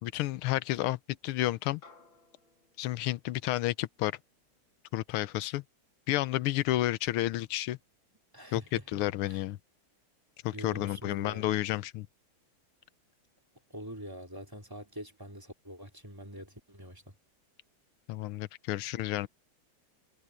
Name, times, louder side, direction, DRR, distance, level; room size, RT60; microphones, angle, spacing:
voice 1, 0.0-1.8 2.8-4.2 4.9-5.6 6.1-7.8 8.5-8.6 8.9-9.6 10.4-12.1 18.1-19.3, left 15 dB, 85° left, 1.6 m, -31 dB
sound 1, 1.8-6.5, left 4 dB, 60° left, 4.5 m, -63 dB
voice 2, 8.3-9.0 9.3-9.4 10.5-11.5 13.7-17.1, equal, 10° right, 3.6 m, -44 dB
omnidirectional pair, 2.4 m